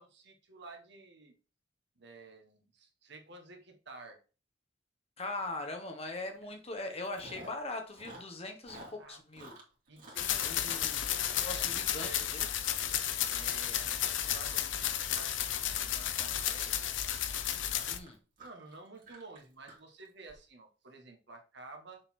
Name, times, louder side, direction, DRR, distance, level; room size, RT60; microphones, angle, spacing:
voice 1, 0.0-1.4 2.0-4.2 6.4-6.5 8.8-9.2 9.9-11.6 12.0-12.2 13.3-16.7 18.4-22.0, right 3 dB, 65° right, 1.5 m, -52 dB
voice 2, 5.2-9.5 10.4-11.1 11.4-12.4 17.9-18.2, left 2 dB, 35° left, 1.4 m, -41 dB
Chewing mastication, 6.2-6.4 6.7-7.7 7.9-12.3 12.6-12.9 13.2-13.6 13.8-20.3, right 2 dB, 45° right, 2.2 m, -52 dB
sound 1, 10.2-18.0, left 10 dB, 80° left, 0.7 m, -33 dB
6.7 x 4.1 x 4.3 m
head